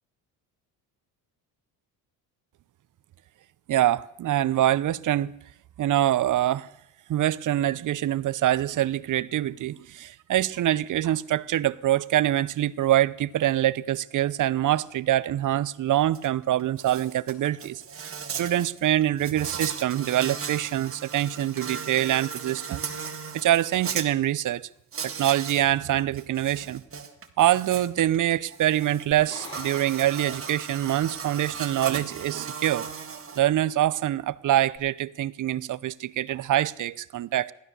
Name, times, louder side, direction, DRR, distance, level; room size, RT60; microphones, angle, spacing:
voice 1, 3.7-5.3 5.8-6.7 7.1-22.9 23.3-24.7 25.0-26.8 27.4-32.9 33.4-37.5, right 13 dB, 50° right, 0.7 m, -25 dB
Insect, 16.1-16.3 16.6-24.1 24.9-25.7 26.0-33.4, right 6 dB, 30° right, 1.8 m, -37 dB
sound 1, 29.1-31.0 34.7-34.8, left 2 dB, 30° left, 4.6 m, -45 dB
15.0 x 12.0 x 6.8 m
supercardioid pair, 90°, 41 cm